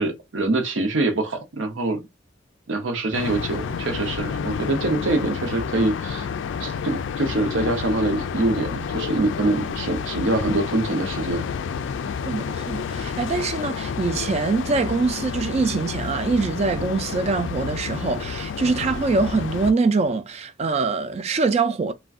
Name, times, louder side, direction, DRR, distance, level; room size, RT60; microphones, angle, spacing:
voice 1, 0.0-2.0 2.7-6.3 6.6-11.5, right 2 dB, 70° right, 0.7 m, -24 dB
sound 1, 3.1-19.7, left 6 dB, 70° left, 0.3 m, -30 dB
voice 2, 12.3-21.9, right 4 dB, 30° right, 0.3 m, -24 dB
2.4 x 2.2 x 3.5 m
head